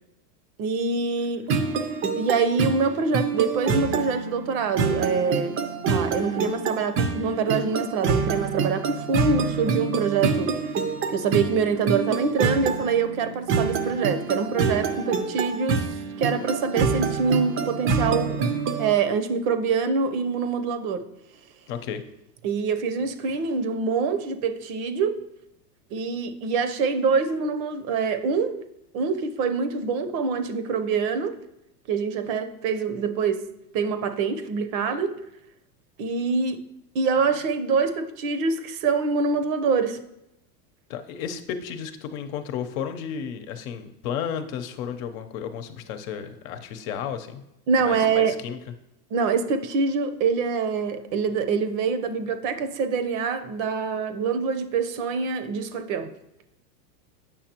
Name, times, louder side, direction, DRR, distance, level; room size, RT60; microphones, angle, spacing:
voice 1, 0.6-1.4 2.2-5.6 5.9-15.9 16.2-18.4 18.8-21.0 22.4-25.2 25.9-28.6 28.9-31.4 31.9-33.4 33.7-35.1 36.0-36.6 36.9-40.0 47.7-48.3 49.1-56.1, right 5 dB, 55° right, 9 dB, 0.8 m, -25 dB
sound 1, 1.5-18.9, right 5 dB, 25° right, 0.6 m, -26 dB
voice 2, 21.7-22.0 40.9-47.4 47.8-48.6, left 8 dB, 55° left, 8 dB, 0.9 m, -33 dB
8.6 x 5.9 x 2.9 m, 0.84 s
hypercardioid pair, 115°, 49 cm